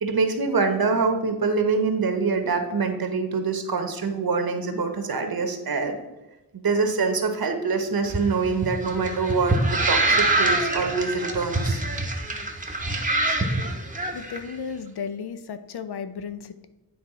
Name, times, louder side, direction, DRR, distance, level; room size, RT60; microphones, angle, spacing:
voice 1, 0.0-6.0 6.5-11.8, right 4 dB, 65° right, 6 dB, 1.0 m, -25 dB
sound 1, 8.0-14.4, right 2 dB, 20° right, 0.8 m, -25 dB
voice 2, 14.1-16.7, left 6 dB, 75° left, 11 dB, 0.6 m, -34 dB
9.6 x 3.4 x 4.8 m, 1.0 s
wide cardioid pair, 125°, 39 cm